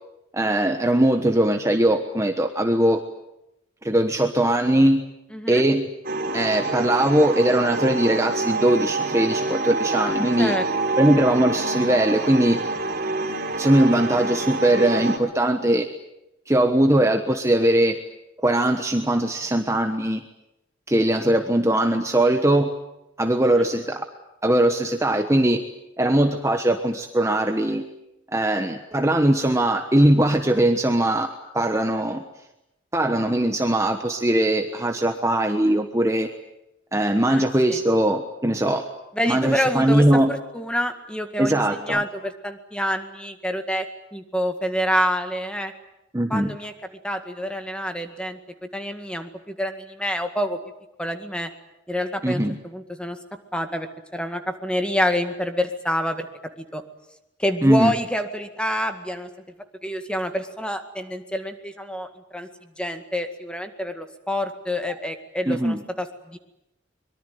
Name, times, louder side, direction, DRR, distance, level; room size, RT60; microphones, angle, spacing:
voice 1, 0.3-3.0 3.8-5.0 5.5-5.9 6.3-10.6 11.0-12.6 13.6-15.9 16.5-18.0 18.4-20.2 20.9-22.7 23.2-24.0 24.4-25.6 26.0-27.9 28.3-32.2 32.9-36.3 36.9-38.9 39.2-40.3 41.4-42.0 46.1-46.5 52.2-52.6 57.6-57.9 65.5-65.8, right 1 dB, 15° right, 6 dB, 1.2 m, -20 dB
voice 2, 5.3-5.6 10.4-10.6 37.3-37.8 39.1-43.9 44.1-45.7 46.3-46.7 47.0-48.4 48.7-50.6 51.0-51.5 51.9-53.2 53.5-56.3 56.6-56.8 57.4-59.3 59.8-62.5 62.8-66.4, equal, 5° left, 7 dB, 2.0 m, -27 dB
sound 1, 6.0-15.2, right 3 dB, 50° right, 3.3 m, -27 dB
24.0 x 22.5 x 9.3 m, 0.88 s
head